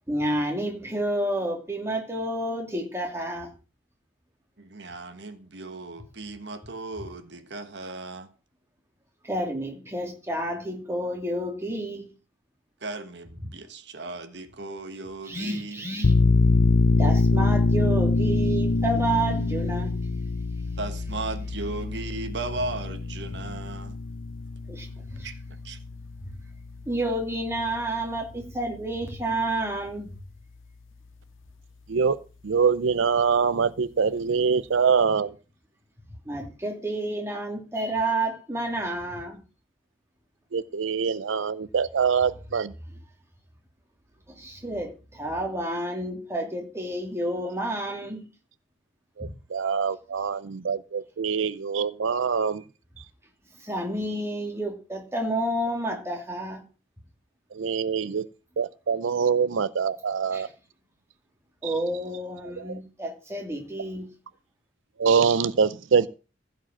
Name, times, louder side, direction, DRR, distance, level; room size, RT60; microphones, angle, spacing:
voice 1, 0.1-3.5 9.2-12.1 15.3-16.1 17.0-19.9 24.7-25.3 26.2-26.3 26.9-30.1 36.2-39.4 44.3-48.2 53.6-56.6 60.3-60.5 61.6-64.1, right 1 dB, 15° right, 2.7 m, -30 dB
voice 2, 4.6-8.3 12.8-15.9 20.8-24.0 25.2-25.3 25.6-25.8, right 2 dB, 60° right, 1.3 m, -36 dB
sound 1, 16.0-27.3, left 3 dB, 90° left, 0.7 m, -25 dB
voice 3, 32.4-35.3 40.5-42.7 49.2-52.6 57.6-58.3 58.6-60.5 65.0-66.1, right 6 dB, 80° right, 0.5 m, -24 dB
15.5 x 5.2 x 7.5 m
head